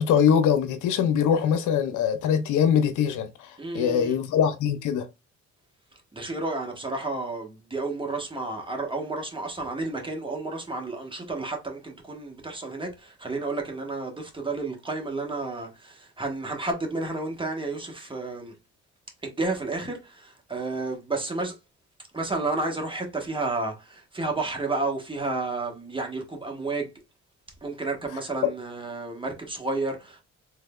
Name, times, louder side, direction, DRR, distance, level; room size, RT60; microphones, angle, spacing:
voice 1, 0.0-3.3 3.7-5.1 28.4-28.5, left 8 dB, 85° left, 0.7 m, -22 dB
voice 2, 3.6-4.2 6.1-18.5 19.2-21.6 22.1-26.9 27.6-30.2, right 3 dB, 15° right, 1.3 m, -31 dB
3.5 x 3.3 x 2.3 m
cardioid pair, 90°, 30 cm